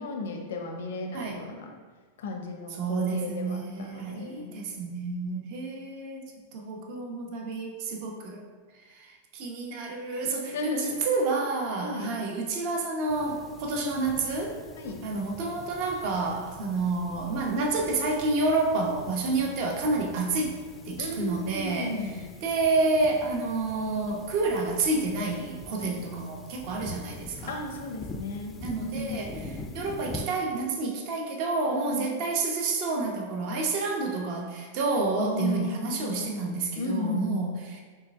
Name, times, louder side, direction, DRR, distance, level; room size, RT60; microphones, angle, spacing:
voice 1, 0.0-1.7 2.2-4.5 10.5-11.2 11.8-12.2 14.8-15.0 21.0-22.3 25.8-26.0 27.5-28.5 28.8-29.2 31.7-32.1 35.2-37.5, left 2 dB, 80° left, 2 dB, 0.6 m, -35 dB
voice 2, 2.8-6.3 6.5-8.4 8.9-14.5 15.0-20.6 20.8-22.1 22.4-27.6 28.6-37.8, right 3 dB, 55° right, 1 dB, 0.8 m, -29 dB
sound 1, 13.1-30.3, left 3 dB, 20° left, 0.4 m, -44 dB
4.5 x 3.3 x 3.5 m, 1.5 s
hypercardioid pair, 125°, 0 cm